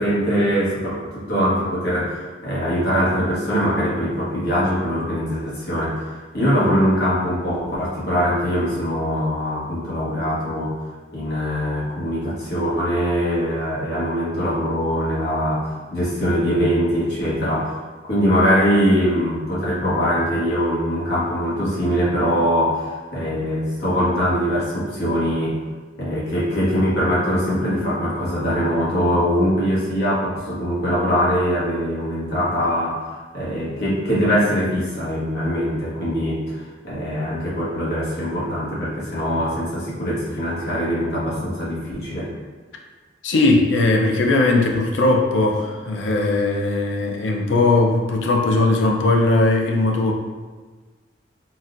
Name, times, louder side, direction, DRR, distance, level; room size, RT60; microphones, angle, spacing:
voice 1, 0.0-10.7 11.1-17.8 18.0-25.6 26.0-42.3, equal, 60° left, -7 dB, 1.0 m, -22 dB
voice 2, 43.2-50.1, left 2 dB, 80° left, 1 dB, 0.4 m, -19 dB
4.0 x 2.2 x 2.4 m, 1.3 s
head